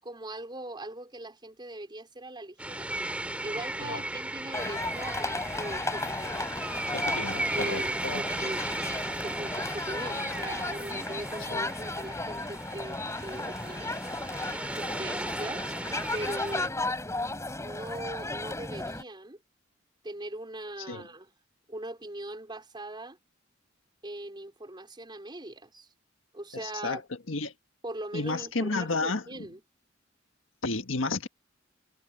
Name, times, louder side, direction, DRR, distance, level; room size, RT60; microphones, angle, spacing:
voice 1, 0.0-2.9 3.4-6.5 7.5-8.6 9.2-14.0 14.7-15.7 16.1-16.7 17.6-19.4 20.0-21.3 21.7-23.2 24.0-25.9 26.3-27.0 27.8-29.6, right 1 dB, 25° right, 4.8 m, -40 dB
sound 1, 2.6-16.7, right 1 dB, 5° right, 2.7 m, -36 dB
sound 2, 4.5-19.0, left 2 dB, 15° left, 5.2 m, -35 dB
voice 2, 6.9-8.2 11.5-11.7 20.9-21.0 26.5-27.0 27.3-27.5 28.1-29.5 30.6-31.3, left 3 dB, 80° left, 1.6 m, -32 dB
head